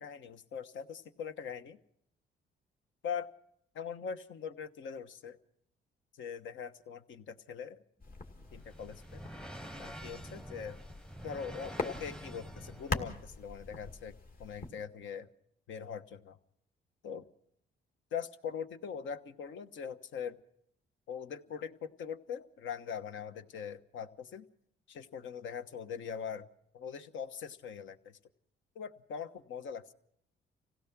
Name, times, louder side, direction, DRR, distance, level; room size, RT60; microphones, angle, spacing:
voice 1, 0.0-1.8 3.0-3.3 3.7-5.4 6.2-7.8 8.5-9.2 9.8-10.8 11.2-15.3 15.7-16.4 17.0-17.2 18.1-20.4 21.1-24.4 24.9-26.5 26.7-28.2 28.7-29.9, left 7 dB, 75° left, 9 dB, 1.2 m, -42 dB
sound 1, 8.0-14.7, left 3 dB, 45° left, 2.3 m, -43 dB
sound 2, 8.0-13.1, equal, 5° left, 0.8 m, -47 dB
26.5 x 16.5 x 6.0 m, 0.71 s
cardioid pair, 90°, 20 cm